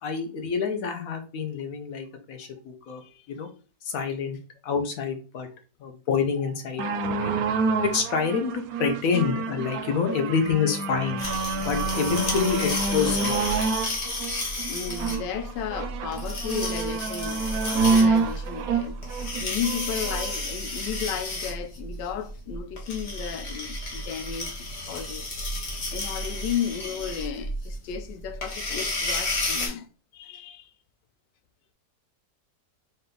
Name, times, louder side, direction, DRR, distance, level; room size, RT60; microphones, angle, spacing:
voice 1, 0.0-3.0 3.3-3.5 3.8-4.4 4.6-5.5 5.8-6.8 7.2-7.3 7.8-11.2 11.6-13.4, left 6 dB, 60° left, 1.2 m, -27 dB
sound 1, 6.8-20.3 21.1-21.2, right 4 dB, 70° right, 1.0 m, -28 dB
sound 2, 11.2-29.7, left 1 dB, 45° left, 1.2 m, -32 dB
voice 2, 14.6-19.0 19.4-25.3 25.7-29.9 30.1-30.7, left 8 dB, 90° left, 1.2 m, -34 dB
4.2 x 2.6 x 3.8 m
omnidirectional pair, 1.9 m